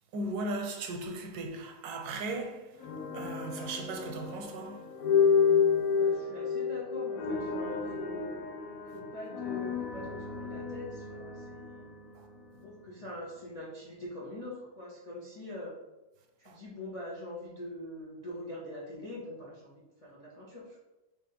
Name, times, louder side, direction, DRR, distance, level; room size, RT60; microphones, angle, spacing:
voice 1, 0.1-2.9 3.1-4.9 8.9-9.0 12.1-12.3 12.5-12.6 16.5-16.6, right 2 dB, 85° right, 1.1 m, -37 dB
sound 1, 2.8-12.9, left 6 dB, 70° left, 1.0 m, -31 dB
voice 2, 5.9-8.3 8.8-11.9 12.6-15.8 16.4-19.7 20.0-20.8, left 1 dB, 55° left, 0.4 m, -43 dB
3.1 x 2.3 x 4.3 m
omnidirectional pair, 1.7 m